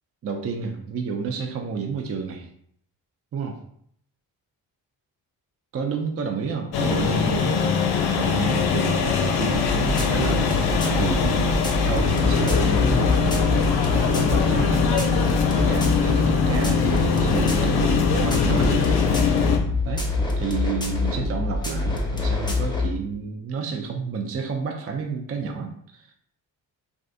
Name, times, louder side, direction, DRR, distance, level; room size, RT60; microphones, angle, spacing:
voice 1, 0.2-2.5 3.3-3.6 5.7-7.7 8.2-15.2 15.6-19.5 19.8-20.1 20.4-26.1, right 5 dB, 35° right, 3 dB, 0.4 m, -30 dB
sound 1, 6.7-19.6, left 6 dB, 55° left, 0.5 m, -22 dB
sound 2, 9.6-22.9, left 3 dB, 10° left, 0.6 m, -25 dB
2.5 x 2.4 x 2.4 m, 0.66 s
supercardioid pair, 40°, 46 cm